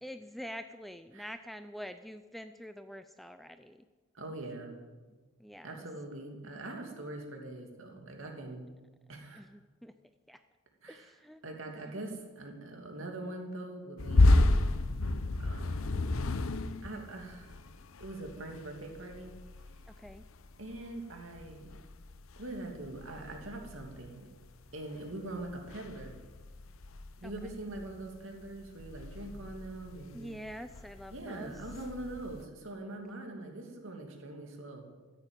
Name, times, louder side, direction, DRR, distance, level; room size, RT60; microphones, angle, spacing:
voice 1, 0.0-3.9 5.4-5.8 9.3-9.9 10.3-10.4 10.9-11.4 11.8-12.0 19.9-20.2 27.2-27.6 30.1-31.6, equal, ahead, 9 dB, 0.4 m, -46 dB
voice 2, 4.1-4.8 5.6-8.7 9.1-9.5 10.8-11.1 11.4-14.4 15.4-15.9 16.8-17.6 18.0-19.3 20.6-21.7 22.4-24.3 24.7-26.2 27.2-30.4 31.1-34.9, right 2 dB, 65° right, 2 dB, 2.7 m, -43 dB
sound 1, 14.0-24.7 25.0-32.4, left 2 dB, 70° left, 0.8 m, -32 dB
14.5 x 10.0 x 8.9 m, 1.3 s
head